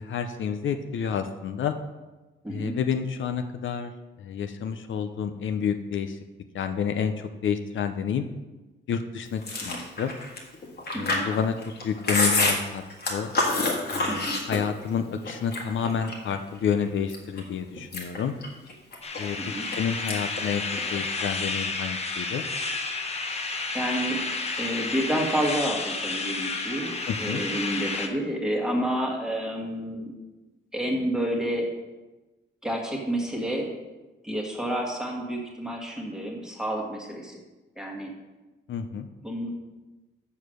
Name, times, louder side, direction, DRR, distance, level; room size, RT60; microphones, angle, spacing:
voice 1, 0.0-1.7 2.5-3.9 4.2-6.2 6.5-8.3 8.9-10.1 10.9-11.5 11.8-12.8 13.1-13.3 13.9-18.4 19.2-19.4 19.7-22.4 27.0-27.4 38.7-39.1, left 7 dB, 70° left, 7 dB, 0.6 m, -29 dB
voice 2, 2.4-2.7 9.7-9.8 10.9-11.3 14.1-14.4 19.4-19.6 23.7-24.2 24.5-30.1 30.7-31.7 32.6-33.7 34.2-37.4 37.8-38.1 39.2-39.5, right 1 dB, 5° right, -1 dB, 1.5 m, -29 dB
Chewing mastication, 9.4-14.9 15.3-16.3 16.8-17.4 17.8-19.8 20.1-20.4 20.7-21.5, left 2 dB, 50° left, 1.6 m, -28 dB
sound 1, 19.0-28.1, left 3 dB, 30° left, 0.8 m, -31 dB
7.1 x 6.6 x 6.3 m, 1.1 s
wide cardioid pair, 175°, 20 cm